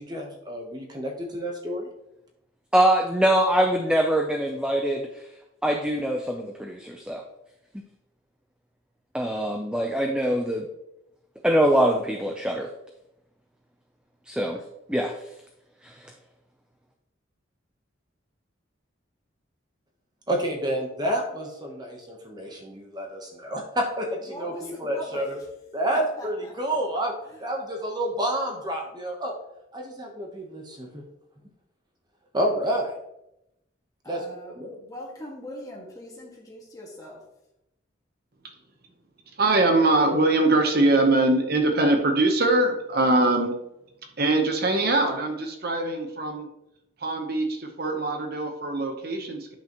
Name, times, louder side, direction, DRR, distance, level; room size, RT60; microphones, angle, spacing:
voice 1, 0.0-1.9 20.3-25.4 25.7-27.1 27.4-29.3 29.7-31.0 32.3-32.9 34.1-34.2 34.5-34.7, right 1 dB, 20° right, 1 dB, 0.9 m, -29 dB
voice 2, 2.7-5.1 5.6-7.2 9.1-10.7 11.4-12.7 14.3-14.6 14.9-15.1 15.8-16.1, right 1 dB, 5° right, 3 dB, 0.5 m, -23 dB
voice 3, 24.3-25.2 25.9-26.3 34.0-37.2, left 1 dB, 15° left, -3 dB, 1.7 m, -41 dB
voice 4, 39.4-43.5 44.2-46.5 47.0-49.5, right 2 dB, 50° right, 4 dB, 0.9 m, -22 dB
9.9 x 5.9 x 3.0 m, 0.86 s
head